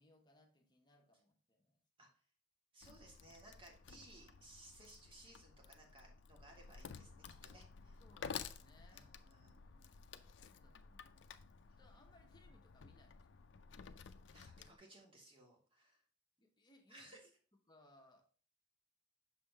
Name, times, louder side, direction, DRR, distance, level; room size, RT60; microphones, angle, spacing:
voice 1, 0.0-2.1 8.0-9.1 9.6-10.2 10.4-11.4 11.8-13.3 16.4-17.2 17.7-18.2, left 1 dB, 25° left, 2 dB, 1.1 m, -68 dB
voice 2, 2.7-8.0 8.9-9.6 14.3-16.0 16.9-17.3, right 1 dB, 30° right, 0 dB, 1.7 m, -61 dB
Wood, 2.8-14.8, left 6 dB, 85° left, 0.4 m, -53 dB
6.4 x 3.5 x 4.6 m, 0.40 s
head